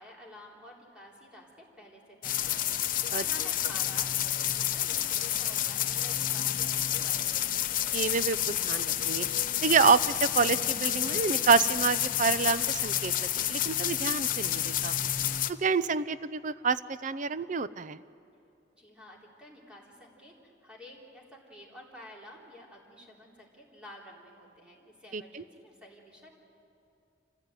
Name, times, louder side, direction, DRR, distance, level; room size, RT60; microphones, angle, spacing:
voice 1, 0.0-7.7 18.7-26.3, left 1 dB, 5° right, -3 dB, 3.6 m, -51 dB
sound 1, 2.2-15.5, left 11 dB, 50° left, 0.8 m, -29 dB
voice 2, 7.9-9.3 9.6-14.9 15.6-18.0 25.1-25.4, right 5 dB, 45° right, 15 dB, 0.5 m, -28 dB
27.0 x 15.5 x 9.1 m, 2.6 s
head